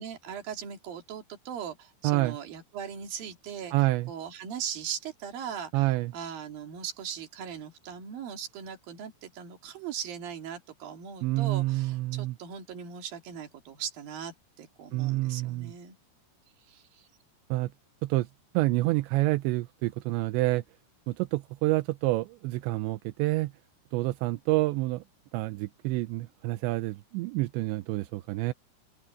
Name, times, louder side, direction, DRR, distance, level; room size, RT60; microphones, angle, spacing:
voice 1, 0.0-3.7 4.1-5.8 6.1-16.0 16.7-17.1, right 8 dB, 55° right, 3.9 m, -39 dB
voice 2, 2.0-2.4 3.7-4.1 5.7-6.1 11.2-12.4 14.9-15.7 17.5-17.7 18.0-18.3 18.5-20.6 21.1-23.5 23.9-25.0 25.3-28.5, right 19 dB, 85° right, 2.8 m, -28 dB
open air
omnidirectional pair, 5.4 m